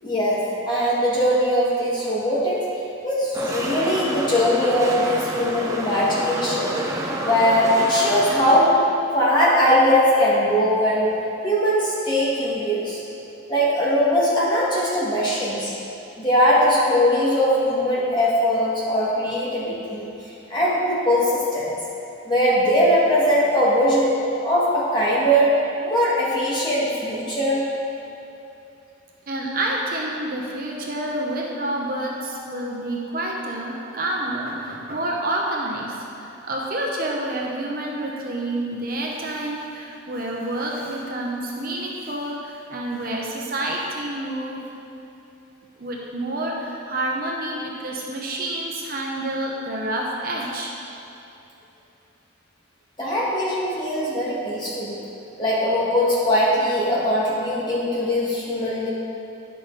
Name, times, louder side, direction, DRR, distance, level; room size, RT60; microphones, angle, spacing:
voice 1, 0.0-2.6 3.0-8.7 9.1-11.2 11.4-13.0 13.5-15.7 16.2-20.1 20.5-21.7 22.3-24.1 24.4-25.5 25.8-27.6 53.0-55.0 55.4-58.9, equal, 20° left, -7 dB, 1.6 m, -20 dB
sound 1, 3.3-8.6, right 1 dB, 15° right, 0.6 m, -29 dB
voice 2, 29.3-44.6 45.8-50.7, right 1 dB, 45° right, -2 dB, 0.8 m, -28 dB
10.0 x 5.9 x 3.9 m, 2.8 s
head